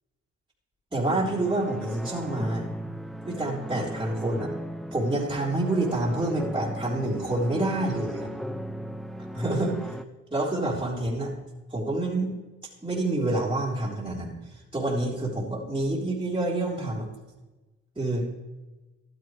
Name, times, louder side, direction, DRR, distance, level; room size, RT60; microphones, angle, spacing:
voice 1, 0.9-2.7 3.2-4.5 4.9-8.3 9.3-10.0 10.3-11.4 11.7-12.3 12.8-17.1 18.0-18.3, right 2 dB, 15° right, -5 dB, 3.6 m, -28 dB
sound 1, 1.1-10.0, equal, ahead, 0.6 m, -37 dB
13.5 x 12.0 x 3.3 m, 1.1 s
cardioid pair, 90°, 30 cm